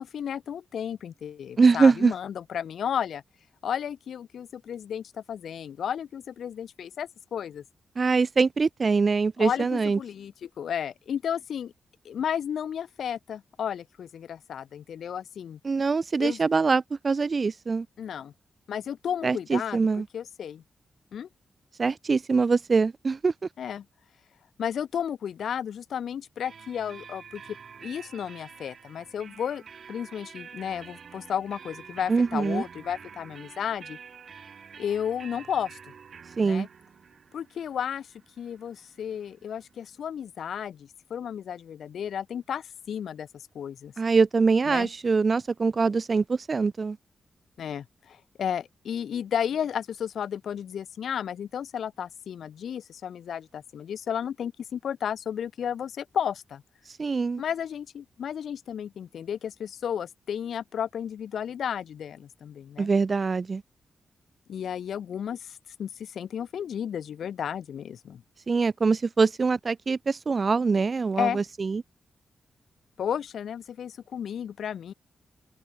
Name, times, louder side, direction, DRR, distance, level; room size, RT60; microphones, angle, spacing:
voice 1, 0.0-3.2 3.6-7.6 9.4-11.7 12.0-15.6 16.2-16.4 18.0-18.3 18.7-19.8 20.1-20.6 21.1-21.3 23.6-23.8 24.6-27.4 27.8-29.6 29.9-34.0 34.8-35.8 36.4-36.7 37.3-38.1 38.4-43.9 44.7-44.9 47.6-56.6 57.4-62.9 64.5-68.2 71.2-71.4 73.0-74.9, left 8 dB, 75° left, 5.4 m, -33 dB
voice 2, 1.6-2.1 8.0-10.0 15.6-17.9 19.2-20.1 21.8-23.3 32.1-32.6 36.4-36.7 44.0-47.0 57.0-57.4 62.8-63.6 68.5-71.8, right 4 dB, 30° right, 2.3 m, -23 dB
sound 1, 26.4-40.0, right 6 dB, 50° right, 6.6 m, -48 dB
wide cardioid pair, 170°, 0 cm